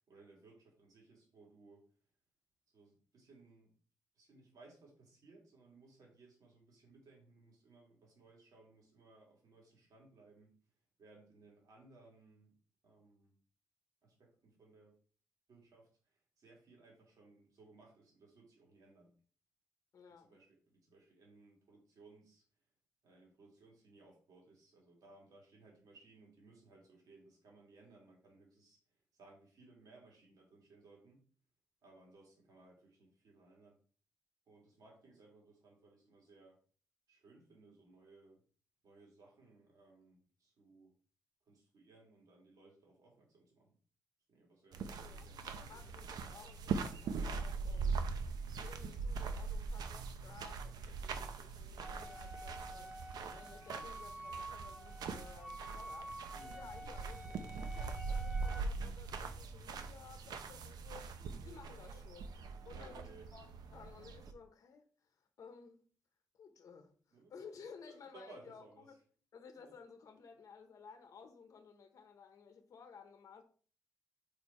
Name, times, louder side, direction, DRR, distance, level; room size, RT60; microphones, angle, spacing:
voice 1, 0.1-1.9 2.7-3.7 4.2-10.6 11.0-12.5 12.8-13.3 14.0-15.0 15.5-19.1 20.2-22.4 23.0-28.8 29.1-31.2 31.8-33.8 34.5-36.6 37.1-38.4 38.8-40.9 41.5-43.8 44.3-45.9 56.3-57.2 61.2-61.3 62.7-63.3 67.1-67.3 67.9-68.9 69.6-69.7, right 3 dB, 65° right, 2.4 m, -62 dB
voice 2, 19.9-20.4 45.0-45.3 45.7-48.0 48.6-65.9 66.3-69.0 69.3-73.4, left 5 dB, 55° left, 0.9 m, -56 dB
sound 1, 44.7-64.3, right 4 dB, 80° right, 0.6 m, -42 dB
Wind instrument woodwind instrument, 51.8-58.6, right 1 dB, 25° right, 0.8 m, -49 dB
4.9 x 4.6 x 4.3 m
wide cardioid pair, 150°, 7 cm